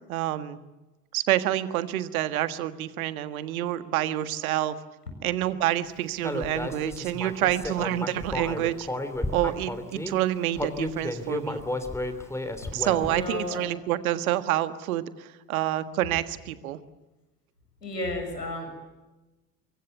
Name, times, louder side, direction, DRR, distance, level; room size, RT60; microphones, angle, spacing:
voice 1, 0.1-0.6 1.1-4.7 5.2-8.9 9.3-11.6 12.7-16.8, right 13 dB, 60° right, 12 dB, 1.7 m, -28 dB
Human voice, 6.2-10.1 10.5-13.3, left 1 dB, 5° left, 3.1 m, -32 dB
voice 2, 13.0-13.6 17.8-18.8, left 1 dB, 80° left, 4 dB, 7.2 m, -33 dB
25.0 x 23.5 x 8.1 m, 1.1 s
figure-of-eight pair, 70°, 47 cm